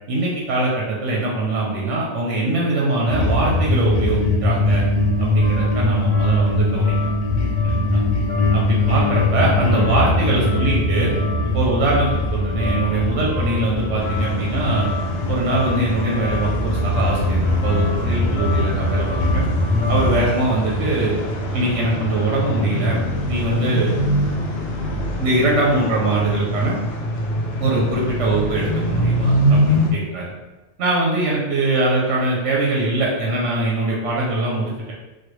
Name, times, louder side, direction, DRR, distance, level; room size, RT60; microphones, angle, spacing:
voice 1, 0.1-4.8 5.2-7.1 7.6-8.0 8.5-11.1 11.4-14.9 15.3-19.4 19.9-21.2 21.5-23.0 23.3-23.9 25.2-26.8 27.6-30.3 30.8-34.9, right 2 dB, 85° right, -3 dB, 1.0 m, -22 dB
sound 1, 3.1-20.2, left 2 dB, 90° left, 1.1 m, -21 dB
sound 2, 4.9-20.3, left 4 dB, 40° left, 0.9 m, -34 dB
sound 3, 14.0-29.9, equal, 65° left, 0.7 m, -24 dB
3.1 x 2.2 x 3.0 m, 1.1 s
omnidirectional pair, 1.2 m